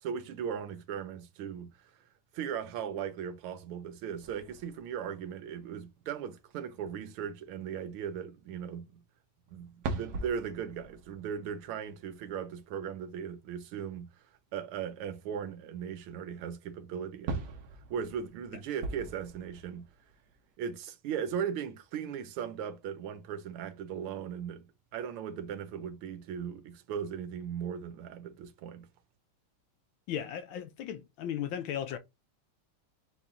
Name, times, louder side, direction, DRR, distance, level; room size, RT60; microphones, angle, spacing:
voice 1, 0.0-2.0 2.3-9.0 9.5-14.1 14.5-17.5 17.9-19.9 20.6-28.9, right 8 dB, 80° right, 1.6 m, -38 dB
sound 1, 4.2-5.5 6.2-6.3 7.1-7.2 7.6-7.7 9.5-13.7 15.3-15.4 15.9-16.0 17.3-20.5, right 3 dB, 60° right, 1.2 m, -41 dB
voice 2, 30.1-32.0, left 9 dB, 75° left, 1.2 m, -36 dB
4.3 x 3.1 x 3.6 m
omnidirectional pair, 2.4 m